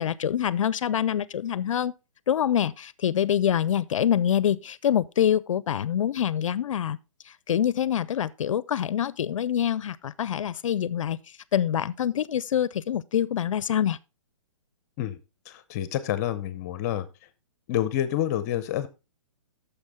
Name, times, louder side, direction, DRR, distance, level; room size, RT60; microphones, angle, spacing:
voice 1, 0.0-1.9 2.3-7.0 7.3-11.2 11.5-14.0, left 9 dB, 75° left, 0.5 m, -25 dB
voice 2, 15.5-17.1 17.7-18.9, left 12 dB, 30° left, 0.7 m, -28 dB
9.7 x 6.9 x 3.5 m
hypercardioid pair, 150°, 17 cm